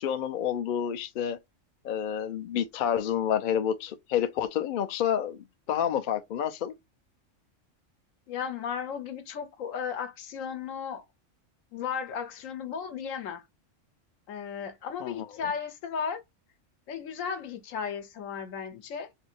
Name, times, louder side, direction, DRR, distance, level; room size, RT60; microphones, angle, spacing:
voice 1, 0.0-1.4 1.8-5.4 5.7-6.7 15.0-15.1, left 9 dB, 60° left, 0.5 m, -29 dB
voice 2, 8.3-11.0 11.7-13.4 14.3-16.2 16.9-19.1, left 7 dB, 85° left, 1.1 m, -35 dB
2.7 x 2.6 x 4.2 m
omnidirectional pair, 1.3 m